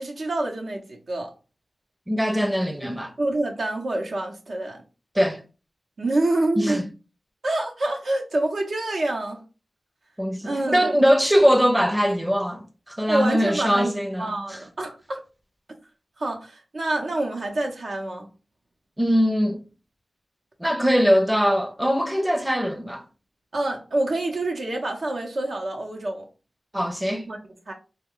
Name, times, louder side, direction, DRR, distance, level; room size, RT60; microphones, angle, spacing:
voice 1, 0.0-1.3 3.2-4.8 6.0-6.8 7.4-9.4 10.4-10.9 13.1-15.2 16.2-18.3 23.5-26.2 27.3-27.4 27.7-27.8, right 2 dB, 80° right, 0.8 m, -27 dB
voice 2, 2.1-3.1 5.1-5.4 6.6-6.8 10.2-14.6 19.0-19.6 20.6-23.0 26.7-27.3, equal, 10° right, 0.5 m, -21 dB
3.2 x 2.2 x 3.6 m
cardioid pair, 45°, 0 cm